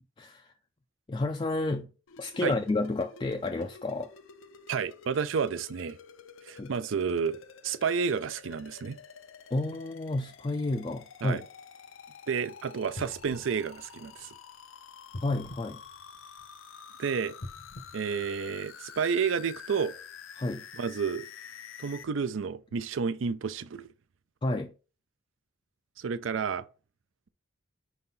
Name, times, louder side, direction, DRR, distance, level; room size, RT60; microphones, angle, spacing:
voice 1, 0.2-0.5 1.1-1.9 2.2-4.1 6.6-6.7 9.5-11.5 15.2-15.8 20.4-20.7 24.4-24.7, left 2 dB, 25° left, 0.3 m, -31 dB
sound 1, 2.1-22.0, left 7 dB, 90° left, 0.6 m, -49 dB
voice 2, 4.7-6.0 6.5-7.4 7.6-9.0 11.2-11.4 12.3-14.3 17.0-17.3 17.9-19.9 20.8-21.3 21.8-23.9 26.0-26.6, right 6 dB, 80° right, 0.5 m, -30 dB
sound 2, 12.9-14.6 15.1-16.7 17.3-19.0 19.6-19.7, left 1 dB, 45° left, 0.7 m, -46 dB
4.7 x 4.0 x 5.5 m
head